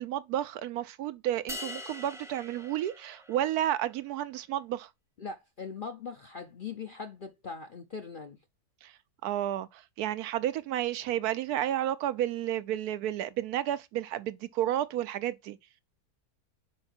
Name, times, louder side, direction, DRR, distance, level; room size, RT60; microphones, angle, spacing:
voice 1, 0.0-4.9 8.8-8.9 9.2-15.6, right 12 dB, 80° right, 1.1 m, -31 dB
sound 1, 1.5-3.8, left 2 dB, 5° right, 0.7 m, -43 dB
voice 2, 5.2-8.4, left 5 dB, 55° left, 0.6 m, -40 dB
5.3 x 4.8 x 4.3 m
omnidirectional pair, 1.6 m